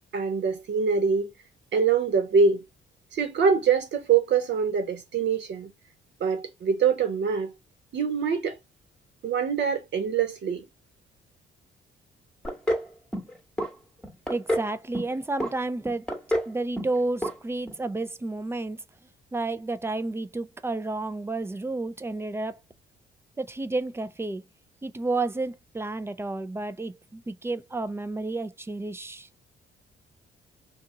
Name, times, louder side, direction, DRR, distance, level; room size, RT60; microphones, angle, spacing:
voice 1, 0.1-1.3 1.7-2.6 3.1-5.7 6.2-7.5 7.9-8.6 9.2-10.7, right 6 dB, 65° right, 1.2 m, -24 dB
sound 1, 12.4-12.9 13.1-13.7 14.0-14.7 14.9-15.5 15.8-16.5 16.8-17.0 17.2-17.3 17.7-17.8, equal, 5° left, 1.1 m, -28 dB
voice 2, 14.3-16.1 16.5-18.8 19.3-22.6 23.4-24.4 24.8-29.3, right 2 dB, 10° right, 0.4 m, -31 dB
2.9 x 2.4 x 3.7 m
cardioid pair, 90°, 20 cm